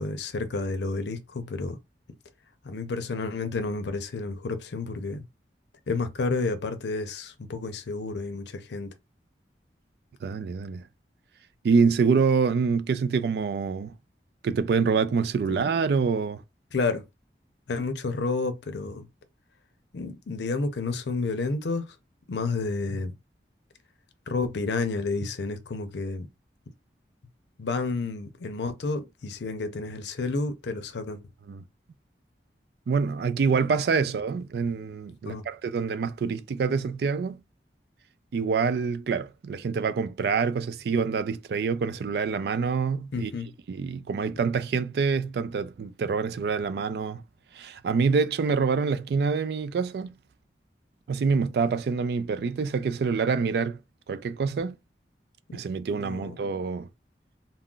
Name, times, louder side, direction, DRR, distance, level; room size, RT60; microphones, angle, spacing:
voice 1, 0.0-1.8 2.6-5.2 5.9-8.9 15.5-15.6 16.7-17.0 17.7-19.1 19.9-21.9 22.3-23.1 24.3-26.3 27.6-31.2 35.3-35.5 43.1-43.5 55.5-55.6 56.0-56.4, left 3 dB, 80° left, 0.5 m, -30 dB
voice 2, 10.2-10.8 11.6-13.9 14.4-16.4 31.5-31.6 32.9-37.4 38.3-43.3 43.7-47.2 47.5-50.1 51.1-53.8 54.1-54.7 55.5-56.9, right 5 dB, 65° right, 0.3 m, -26 dB
2.3 x 2.0 x 3.7 m
head